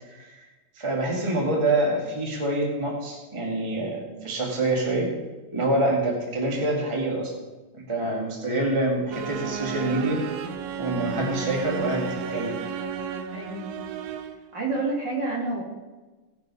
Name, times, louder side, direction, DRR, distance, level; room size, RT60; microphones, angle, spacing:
voice 1, 0.7-5.1 5.5-7.3 7.8-10.2 10.8-12.5, right 2 dB, 10° right, -1 dB, 1.6 m, -26 dB
sound 1, 9.1-14.5, right 7 dB, 80° right, 2.4 m, -33 dB
voice 2, 13.3-13.7 14.5-15.6, right 3 dB, 35° right, -2 dB, 2.6 m, -29 dB
18.0 x 6.7 x 5.5 m, 1.2 s
omnidirectional pair, 3.9 m